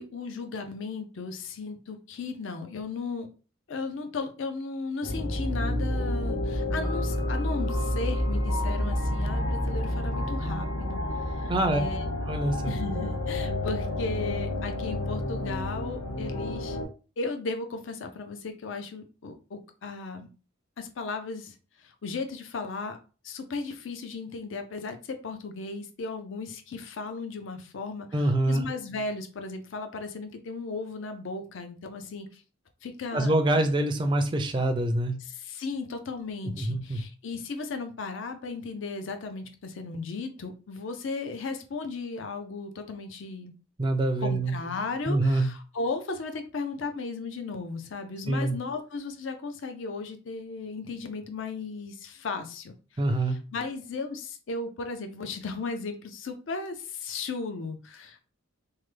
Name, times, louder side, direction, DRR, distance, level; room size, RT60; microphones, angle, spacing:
voice 1, 0.0-3.3 3.7-11.0 11.3-12.0 12.7-16.8 17.2-20.3 20.8-23.0 23.2-32.4 32.8-33.3 35.2-43.5 44.2-52.7 53.3-58.2, left 4 dB, 65° left, 6 dB, 0.5 m, -36 dB
sound 1, 5.0-16.8, left 1 dB, 85° left, 0.8 m, -29 dB
voice 2, 11.5-11.8 12.3-12.7 28.1-28.7 33.1-35.1 36.6-37.0 43.8-44.5 45.1-45.5 48.3-48.6 53.0-53.4, right 1 dB, 25° right, 6 dB, 0.3 m, -25 dB
3.1 x 2.2 x 3.2 m, 0.35 s
head